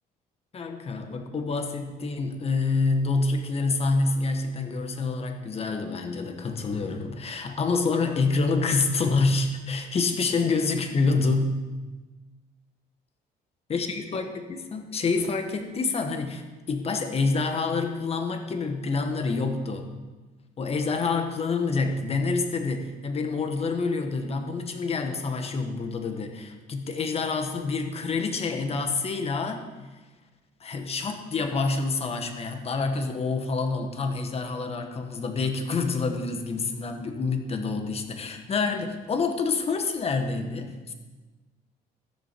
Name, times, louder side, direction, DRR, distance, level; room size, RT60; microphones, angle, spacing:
voice 1, 0.5-11.6 13.7-19.9 20.6-29.7 30.6-40.9, left 4 dB, 35° left, 6 dB, 1.4 m, -27 dB
14.0 x 7.0 x 5.3 m, 1.2 s
cardioid pair, 110°, 17 cm